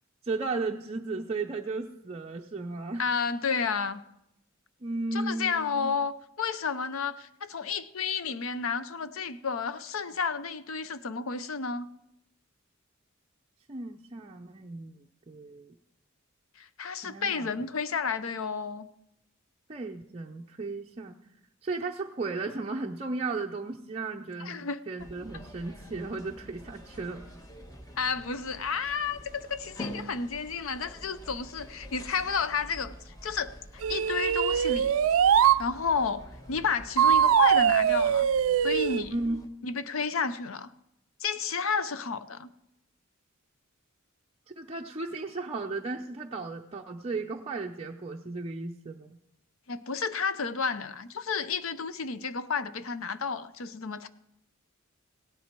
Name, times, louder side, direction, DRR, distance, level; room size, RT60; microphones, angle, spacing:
voice 1, 0.2-3.1 4.8-5.9 13.7-15.7 17.0-17.5 19.7-21.2 21.6-27.2 39.1-39.5 44.6-49.2, right 3 dB, 30° right, 1 dB, 0.6 m, -35 dB
voice 2, 3.0-4.0 5.1-11.9 16.6-18.9 24.4-24.8 28.0-33.5 33.9-34.9 35.6-38.3 38.6-39.1 39.6-40.7 41.2-42.5 49.7-54.1, left 5 dB, 75° left, 13 dB, 0.7 m, -31 dB
sound 1, 25.0-39.5, equal, 20° left, 1.3 m, -46 dB
sound 2, 33.8-35.6 37.0-39.0, right 8 dB, 90° right, 0.4 m, -22 dB
16.5 x 10.5 x 4.5 m, 0.83 s
head